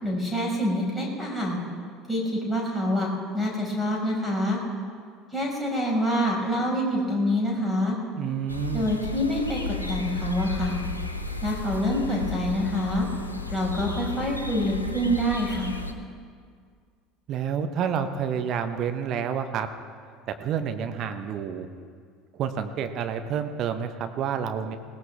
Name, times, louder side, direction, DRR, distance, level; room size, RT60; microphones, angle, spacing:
voice 1, 0.0-1.6 2.1-3.1 3.3-4.6 5.3-8.0 8.7-10.8 11.4-13.1 13.5-15.8, equal, 5° left, -4 dB, 5.3 m, -26 dB
voice 2, 8.2-8.9 17.3-19.7 20.3-21.7 22.4-24.8, right 7 dB, 45° right, 7 dB, 1.1 m, -29 dB
sound 1, 8.5-15.9, left 3 dB, 85° left, 0.8 m, -33 dB
20.5 x 17.5 x 3.5 m, 2.1 s
figure-of-eight pair, 65°, 0 cm